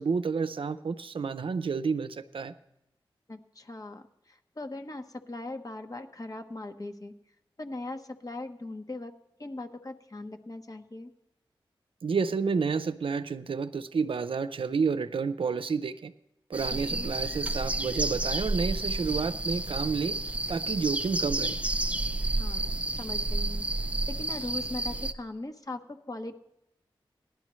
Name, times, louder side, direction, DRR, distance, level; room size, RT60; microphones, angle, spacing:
voice 1, 0.0-2.5 12.0-16.1 16.5-20.2 20.5-21.6, right 5 dB, 65° right, 12 dB, 0.5 m, -30 dB
voice 2, 3.3-7.1 7.6-9.1 9.4-11.1 16.7-17.1 22.3-26.3, left 2 dB, 40° left, 6 dB, 1.1 m, -40 dB
sound 1, 16.5-25.1, right 2 dB, 15° right, 0.7 m, -31 dB
17.5 x 11.5 x 3.1 m, 0.87 s
cardioid pair, 50°, 10 cm